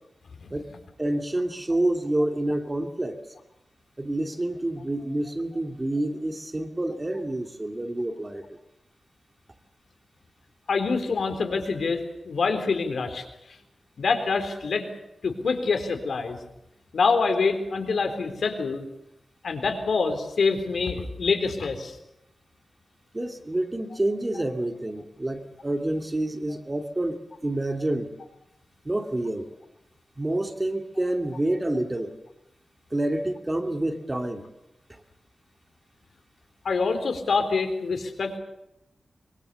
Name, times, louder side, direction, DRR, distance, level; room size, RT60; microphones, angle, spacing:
voice 1, 1.0-3.2 4.0-8.6 23.1-28.1 28.8-29.5 30.2-32.1 32.9-34.4 34.9-35.0, right 1 dB, 20° right, 5 dB, 2.5 m, -28 dB
voice 2, 10.7-13.6 14.0-14.9 15.2-16.4 16.9-18.8 19.4-22.0 36.6-38.4, left 4 dB, 80° left, 6 dB, 3.8 m, -26 dB
24.0 x 23.5 x 6.9 m, 0.85 s
wide cardioid pair, 105°, 0 cm